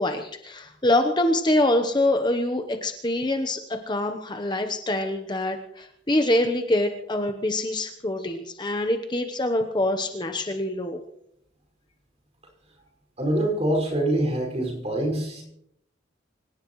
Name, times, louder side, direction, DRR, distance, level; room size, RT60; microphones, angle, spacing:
voice 1, 0.0-11.0, left 1 dB, 20° left, 5 dB, 0.9 m, -25 dB
voice 2, 13.2-15.4, right 1 dB, 30° right, 1 dB, 5.5 m, -25 dB
25.5 x 17.5 x 3.1 m, 0.75 s
head